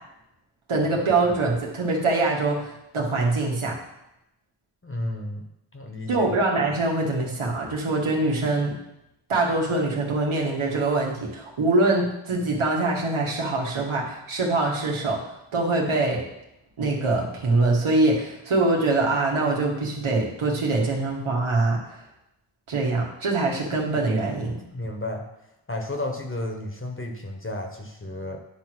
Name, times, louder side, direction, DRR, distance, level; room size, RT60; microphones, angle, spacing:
voice 1, 0.7-3.7 6.1-8.7 9.3-16.2 16.8-21.8 22.7-24.6, right 2 dB, 90° right, -2 dB, 1.8 m, -24 dB
voice 2, 4.8-5.4 5.7-6.3 24.7-25.3 25.7-28.4, left 1 dB, 25° left, 3 dB, 1.3 m, -32 dB
9.8 x 3.3 x 6.1 m, 0.86 s
cardioid pair, 60°, 48 cm